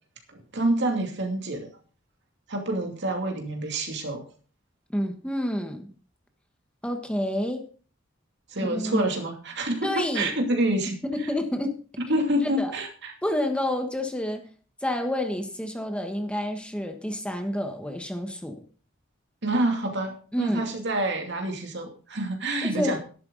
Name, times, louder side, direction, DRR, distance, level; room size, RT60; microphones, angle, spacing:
voice 1, 0.3-1.7 2.5-4.2 8.5-11.3 12.1-13.1 19.4-23.0, right 1 dB, 60° right, 2.6 m, -27 dB
voice 2, 4.9-5.9 6.8-7.7 8.7-9.1 9.8-10.3 11.1-11.8 12.6-12.7 13.2-14.5 14.8-18.6 20.3-20.7 22.6-23.0, left 1 dB, 5° left, 1.3 m, -29 dB
12.5 x 11.5 x 4.0 m
head